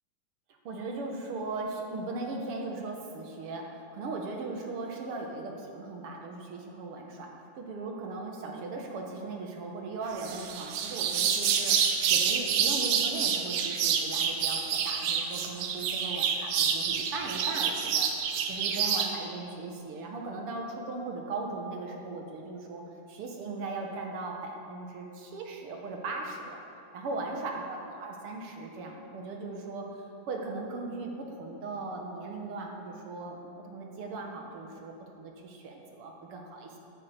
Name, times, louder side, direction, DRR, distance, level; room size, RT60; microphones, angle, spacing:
voice 1, 0.6-7.3 7.6-22.8 23.1-26.6 26.9-29.8 30.3-36.8, right 3 dB, 60° right, 1 dB, 1.7 m, -38 dB
sound 1, 10.2-19.1, right 7 dB, 75° right, 2.3 m, -28 dB
10.5 x 8.6 x 8.0 m, 2.7 s
omnidirectional pair, 3.8 m